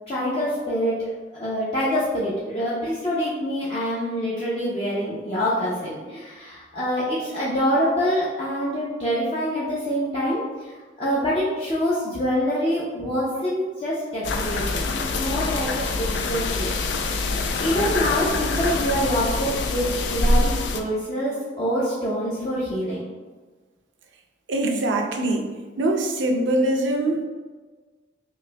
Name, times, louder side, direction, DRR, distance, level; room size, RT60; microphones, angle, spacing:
voice 1, 0.1-1.1 1.3-10.7 11.0-14.8 15.2-16.7 17.1-17.3 17.6-23.0, equal, 30° left, -9 dB, 0.6 m, -25 dB
sound 1, 14.2-20.8, left 3 dB, 75° left, 0.4 m, -25 dB
voice 2, 24.5-25.5 25.8-27.3, right 1 dB, 85° right, 3 dB, 0.5 m, -23 dB
5.2 x 2.6 x 2.2 m, 1.4 s
head